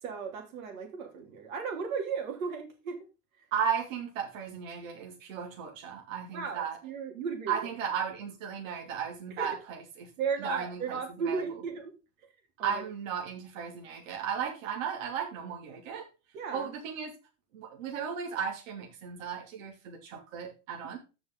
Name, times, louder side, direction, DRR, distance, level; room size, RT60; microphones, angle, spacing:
voice 1, 0.0-3.0 3.4-3.5 6.3-7.6 9.4-9.5 10.2-11.9 12.6-12.8 16.3-16.7, right 5 dB, 90° right, 4 dB, 3.2 m, -35 dB
voice 2, 3.5-6.8 7.5-10.1 10.4-11.4 12.6-16.1 16.5-17.1 17.5-21.0, right 7 dB, 75° right, 0 dB, 2.8 m, -35 dB
14.5 x 5.4 x 3.8 m, 0.30 s
supercardioid pair, 165°, 40 cm